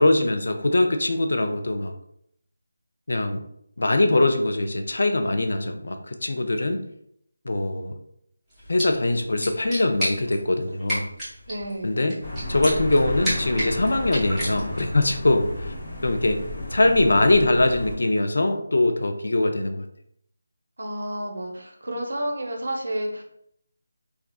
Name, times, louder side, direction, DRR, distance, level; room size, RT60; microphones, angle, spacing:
voice 1, 0.0-1.9 3.1-3.4 3.8-6.8 7.5-7.9 8.7-11.1 11.8-12.2 12.5-15.7 16.0-16.4 16.7-19.9, left 2 dB, 70° left, 6 dB, 0.4 m, -22 dB
sound 1, 8.5-15.0, equal, 5° right, 0.8 m, -33 dB
voice 2, 11.5-11.9 20.8-23.2, right 1 dB, 75° right, 2 dB, 0.7 m, -30 dB
sound 2, 12.2-18.0, left 1 dB, 35° left, 0.8 m, -32 dB
3.5 x 2.4 x 2.3 m, 0.71 s
figure-of-eight pair, 170°, 0 cm